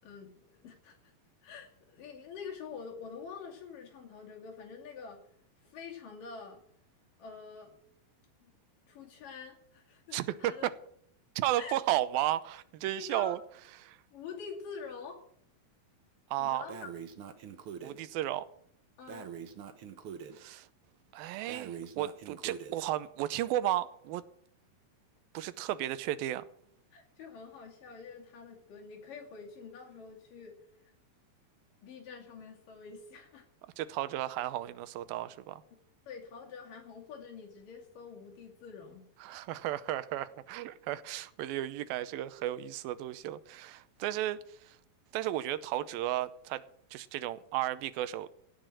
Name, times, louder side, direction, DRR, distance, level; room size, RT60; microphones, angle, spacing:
voice 1, 0.0-1.1 1.4-5.2 5.6-6.6 7.2-7.7 8.4-8.5 8.9-10.7 11.6-11.8 12.9-13.4 14.1-15.2 16.4-16.9 19.0-19.3 26.9-30.6 31.8-33.5 36.1-39.0, left 5 dB, 70° left, 4.1 m, -46 dB
voice 2, 10.1-10.7 11.4-13.4 13.8-14.0 16.3-16.6 17.8-18.5 20.3-20.7 21.1-24.2 25.3-26.4 33.8-35.6 39.2-44.8 45.1-46.6 46.9-48.3, right 13 dB, 90° right, 2.6 m, -34 dB
Breathing, 16.7-18.0 19.1-20.4 21.5-22.8, right 7 dB, 70° right, 1.3 m, -44 dB
16.5 x 6.1 x 8.8 m
omnidirectional pair, 4.1 m